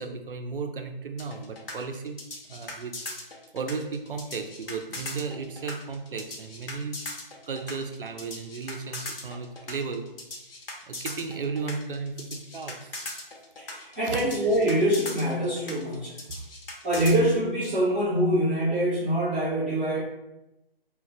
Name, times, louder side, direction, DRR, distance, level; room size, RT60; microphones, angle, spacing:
voice 1, 0.0-2.2 2.5-2.9 3.5-7.0 7.5-10.0 10.9-12.9 14.0-14.2 16.3-16.4, right 4 dB, 60° right, 5 dB, 0.5 m, -34 dB
sound 1, 1.2-17.2, left 2 dB, 70° left, 0.8 m, -39 dB
voice 2, 13.7-16.1 16.8-20.0, right 1 dB, 10° right, -15 dB, 0.6 m, -24 dB
2.2 x 2.2 x 3.8 m, 0.91 s
figure-of-eight pair, 165°, 30 cm